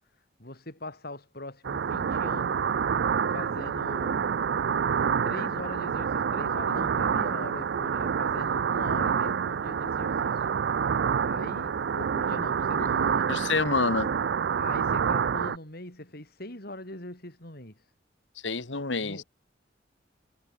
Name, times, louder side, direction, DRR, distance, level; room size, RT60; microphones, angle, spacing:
voice 1, 0.4-2.6 3.3-4.3 5.2-10.3 11.2-13.3 14.6-17.7 19.0-19.3, left 1 dB, 55° left, 7.4 m, -41 dB
sound 1, 1.6-15.6, right 7 dB, 65° right, 0.4 m, -27 dB
voice 2, 13.3-14.1 18.4-19.2, left 3 dB, 85° left, 1.8 m, -27 dB
head